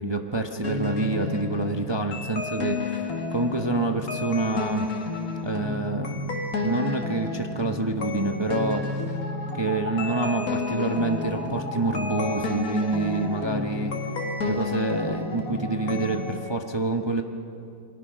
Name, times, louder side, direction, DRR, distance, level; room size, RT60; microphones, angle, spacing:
voice 1, 0.0-4.9 5.4-9.1 9.5-13.9 14.4-17.2, right 2 dB, 20° right, 4 dB, 0.8 m, -27 dB
sound 1, 0.6-16.4, left 3 dB, 70° left, 2.4 m, -31 dB
27.5 x 22.5 x 6.3 m, 2.6 s
omnidirectional pair, 1.6 m